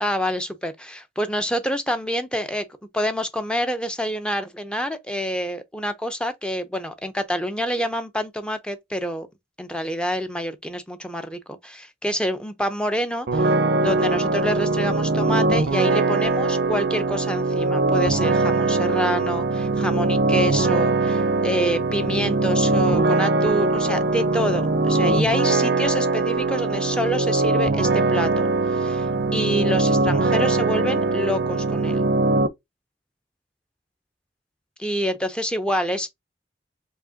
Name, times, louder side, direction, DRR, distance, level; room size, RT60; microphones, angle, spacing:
voice 1, 0.0-2.7 2.9-9.3 9.6-29.1 29.3-32.0 34.8-36.1, equal, 5° left, 0.5 m, -27 dB
sound 1, 13.3-32.5, right 3 dB, 70° right, 0.5 m, -21 dB
4.7 x 2.8 x 2.7 m
head